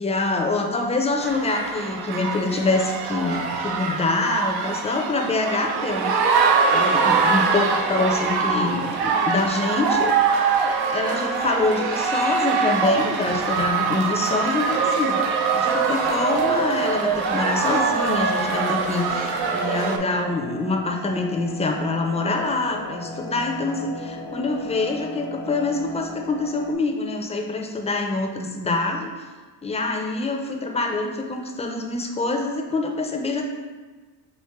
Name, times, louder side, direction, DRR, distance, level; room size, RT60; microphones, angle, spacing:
voice 1, 0.0-6.2 6.7-10.2 10.9-29.1 29.6-33.5, left 3 dB, 15° left, 3 dB, 0.5 m, -25 dB
sound 1, 1.2-20.0, right 5 dB, 65° right, 0.6 m, -23 dB
sound 2, 14.0-26.7, left 2 dB, 80° left, 1.0 m, -38 dB
4.6 x 2.4 x 3.6 m, 1.4 s
cardioid pair, 80°, 42 cm